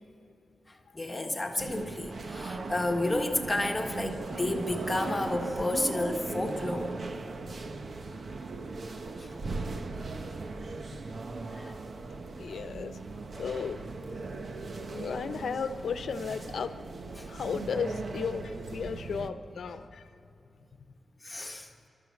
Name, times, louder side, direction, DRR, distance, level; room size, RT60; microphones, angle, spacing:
voice 1, 0.7-7.0 9.2-9.3 11.5-11.8 17.2-17.3 21.2-21.7, left 2 dB, 20° left, 3 dB, 1.5 m, -31 dB
sound 1, 1.6-19.3, right 3 dB, 50° right, 1.0 m, -38 dB
voice 2, 12.4-13.0 13.4-13.8 14.9-16.7 17.3-20.1, left 6 dB, 80° left, 10 dB, 0.9 m, -34 dB
28.0 x 13.0 x 7.3 m, 2.6 s
wide cardioid pair, 120°, 0 cm